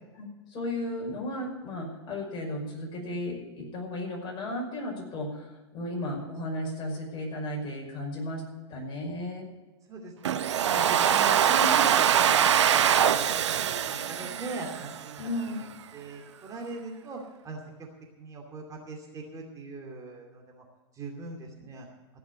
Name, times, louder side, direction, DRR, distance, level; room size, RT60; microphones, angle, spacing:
voice 1, 0.2-8.4 8.7-9.5 15.2-15.6, left 1 dB, 35° left, -1 dB, 5.5 m, -34 dB
voice 2, 9.9-13.3 13.6-15.7 15.9-17.2 17.4-17.6 18.2-20.6 20.9-21.9, right 2 dB, 25° right, 0 dB, 2.5 m, -40 dB
Domestic sounds home sounds, 10.2-15.2, right 9 dB, 85° right, 0.8 m, -23 dB
15.5 x 6.5 x 9.6 m, 1.2 s
hypercardioid pair, 115°, 15 cm